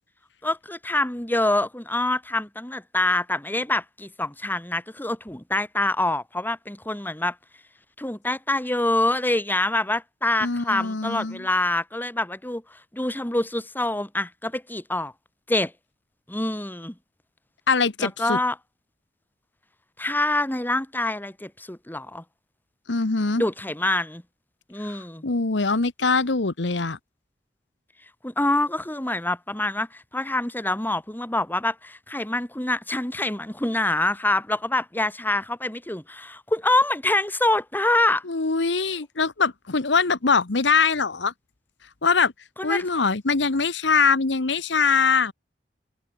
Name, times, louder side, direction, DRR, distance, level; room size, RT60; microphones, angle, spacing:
voice 1, 0.4-7.4 8.0-12.6 12.9-15.1 15.5-15.7 16.3-16.9 18.0-18.6 20.0-22.2 23.4-24.2 24.7-25.2 28.2-38.2 42.6-42.8, left 2 dB, 10° left, 2.1 m, -25 dB
voice 2, 10.4-11.4 17.7-18.4 22.9-23.4 25.2-27.0 38.3-41.3 42.0-42.3 42.6-45.3, left 4 dB, 85° left, 1.2 m, -22 dB
open air
head